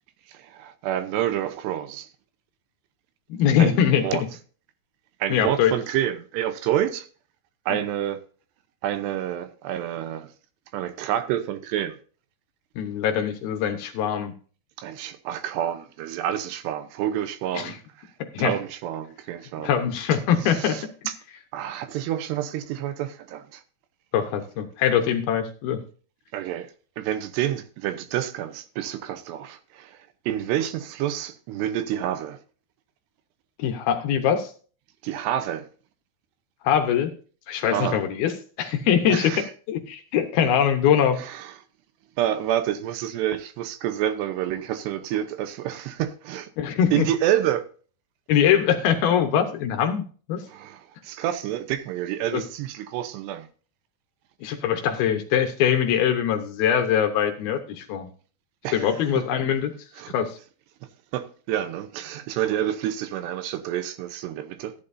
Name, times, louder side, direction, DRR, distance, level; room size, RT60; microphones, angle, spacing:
voice 1, 0.3-2.1 3.6-4.2 5.2-7.1 7.7-8.2 8.8-10.3 10.7-12.0 14.8-17.8 18.4-19.7 20.5-21.1 21.5-23.6 26.3-26.7 27.0-30.0 30.3-32.4 35.0-35.7 37.7-38.0 39.1-39.5 41.2-41.5 42.2-46.5 46.9-47.6 50.5-53.5 58.6-58.9 60.0-60.1 61.1-64.7, right 11 dB, 80° right, 2.9 m, -28 dB
voice 2, 3.3-4.3 5.3-5.7 7.7-7.8 12.8-14.3 17.5-17.8 18.2-18.6 19.6-20.8 24.1-25.8 33.6-34.5 36.6-37.1 37.5-41.2 46.6-47.1 48.3-50.0 50.3-50.4 52.3-52.4 54.4-58.1 58.7-59.7 60.1-60.4, left 8 dB, 70° left, 2.6 m, -22 dB
14.5 x 10.5 x 2.6 m
omnidirectional pair, 5.0 m